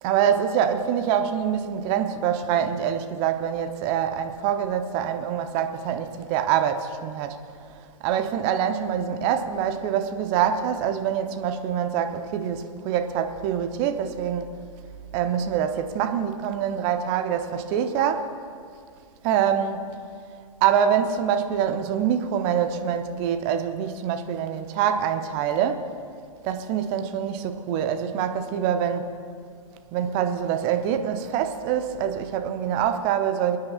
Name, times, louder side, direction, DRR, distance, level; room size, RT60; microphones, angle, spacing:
voice 1, 0.0-7.4 8.0-14.5 15.1-18.3 19.2-19.8 20.6-25.9 26.4-29.1 29.9-33.6, right 9 dB, 30° right, 0.8 m, -25 dB
28.5 x 9.6 x 2.5 m
figure-of-eight pair, 110°, 17 cm